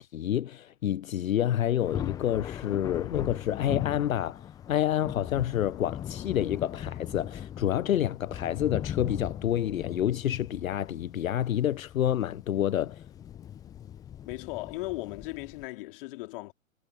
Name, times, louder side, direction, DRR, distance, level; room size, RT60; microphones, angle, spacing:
voice 1, 0.0-13.0, left 11 dB, 75° left, 0.6 m, -28 dB
Thunder, 1.8-15.6, left 10 dB, 10° left, 0.6 m, -39 dB
voice 2, 14.2-16.5, left 21 dB, 40° left, 3.0 m, -37 dB
hypercardioid pair, 125°, 41 cm